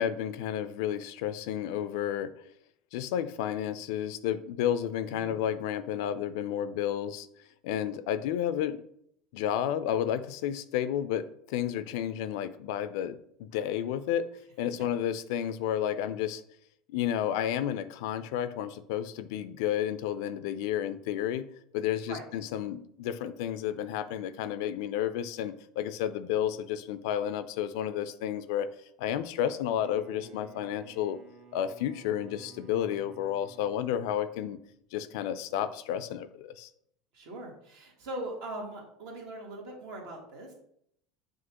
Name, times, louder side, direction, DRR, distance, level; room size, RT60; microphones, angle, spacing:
voice 1, 0.0-2.3 2.9-7.3 7.6-8.8 9.3-14.2 14.6-16.4 16.9-28.7 29.0-31.2 31.5-34.6 34.9-36.7, left 10 dB, 75° left, 13 dB, 0.3 m, -31 dB
Bowed string instrument, 29.4-34.8, right 5 dB, 40° right, 0.7 m, -54 dB
voice 2, 37.1-40.5, right 1 dB, 65° right, -1 dB, 1.4 m, -40 dB
6.1 x 2.4 x 2.9 m, 0.71 s
hypercardioid pair, 95°, 2 cm